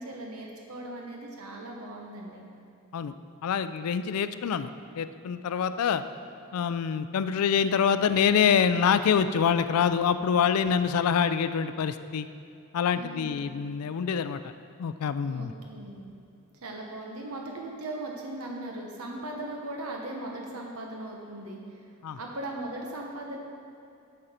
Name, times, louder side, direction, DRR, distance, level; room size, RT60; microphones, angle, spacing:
voice 1, 0.0-2.4 12.9-13.4 15.3-16.0 16.5-21.9 22.2-23.4, right 1 dB, 75° right, 0 dB, 1.0 m, -38 dB
voice 2, 3.4-6.0 6.5-12.3 12.7-14.5 14.8-15.5 22.0-22.2, left 7 dB, 80° left, 12 dB, 0.4 m, -26 dB
8.8 x 6.6 x 4.3 m, 2.5 s
head